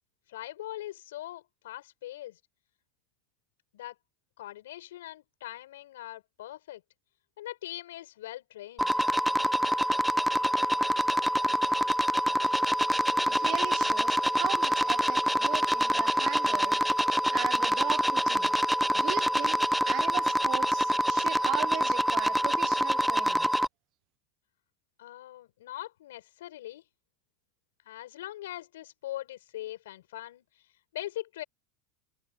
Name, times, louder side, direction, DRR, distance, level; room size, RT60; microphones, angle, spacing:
voice 1, 0.3-2.4 3.7-4.0 4.4-6.8 7.4-8.9 25.0-26.8 27.8-30.4 30.9-31.4, left 14 dB, 90° left, 6.0 m, -41 dB
sound 1, 8.8-23.7, equal, ahead, 0.4 m, -26 dB
voice 2, 13.2-16.8 17.3-18.5 18.9-23.5, right 17 dB, 50° right, 0.8 m, -38 dB
supercardioid pair, 125°, 0 cm